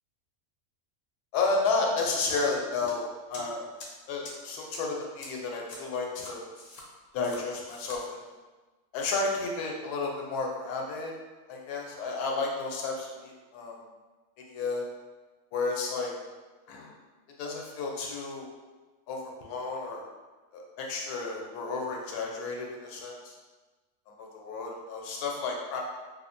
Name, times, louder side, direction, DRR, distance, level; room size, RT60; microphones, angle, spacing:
voice 1, 1.3-3.6 4.1-6.5 7.1-8.3 8.9-11.1 11.5-13.8 14.5-14.8 15.5-16.1 16.7-16.9 17.4-18.5 19.1-20.0 20.5-23.3 24.2-25.8, left 3 dB, 85° left, 0 dB, 1.1 m, -32 dB
sound 1, 2.0-2.1 2.4-2.9 3.3-3.4 3.8-3.9 4.2-4.3 4.7-4.8 5.2-5.3 5.7-5.8 6.2-6.8 7.2-7.4 7.7-8.0, left 3 dB, 65° left, 0.8 m, -43 dB
3.1 x 2.0 x 2.5 m, 1.3 s
omnidirectional pair, 1.6 m